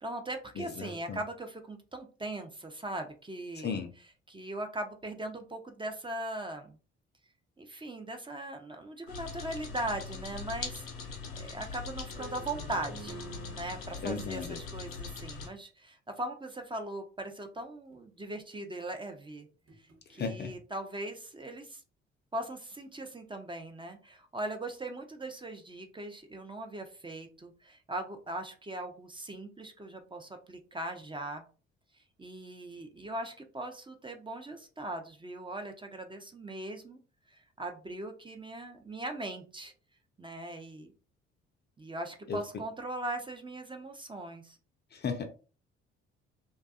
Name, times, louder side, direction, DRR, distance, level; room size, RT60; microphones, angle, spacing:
voice 1, 0.0-6.8 7.6-13.2 13.5-19.5 20.1-21.8 22.3-31.4 32.2-37.0 37.3-39.7 40.2-40.9 41.8-44.6, right 1 dB, 15° right, 5 dB, 0.5 m, -40 dB
voice 2, 0.6-1.2 3.6-3.9 14.0-14.6 20.2-20.5 42.3-42.4 44.9-45.2, left 5 dB, 35° left, 7 dB, 0.5 m, -35 dB
sound 1, 9.1-15.5, left 5 dB, 90° left, 0.5 m, -42 dB
sound 2, 12.1-14.0 16.2-16.3 17.5-17.6 17.9-18.0 19.7-20.0, right 2 dB, 45° right, 0.9 m, -47 dB
2.5 x 2.3 x 2.4 m, 0.36 s
hypercardioid pair, 50°, 30 cm